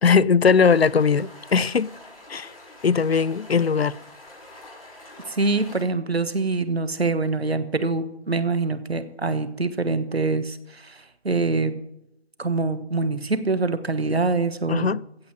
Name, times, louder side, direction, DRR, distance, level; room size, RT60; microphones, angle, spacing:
voice 1, 0.0-1.9 2.3-2.5 2.8-4.0 14.7-15.0, left 5 dB, 65° left, 0.5 m, -19 dB
sound 1, 0.6-5.8, left 2 dB, 30° left, 5.7 m, -45 dB
voice 2, 5.3-11.8 12.4-15.0, right 3 dB, 65° right, 1.3 m, -25 dB
15.5 x 5.5 x 7.5 m
figure-of-eight pair, 165°, 33 cm